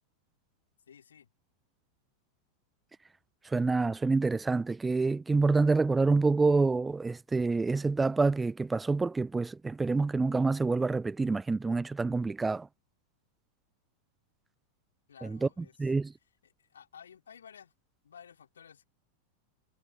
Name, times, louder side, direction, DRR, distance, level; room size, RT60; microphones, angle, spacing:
voice 1, 0.9-1.3 15.1-15.9 16.4-17.7 18.0-18.9, left 8 dB, 70° left, 4.3 m, -54 dB
voice 2, 3.4-12.7 15.2-15.5 15.8-16.1, right 3 dB, 10° right, 0.4 m, -27 dB
figure-of-eight pair, 90°, 0 cm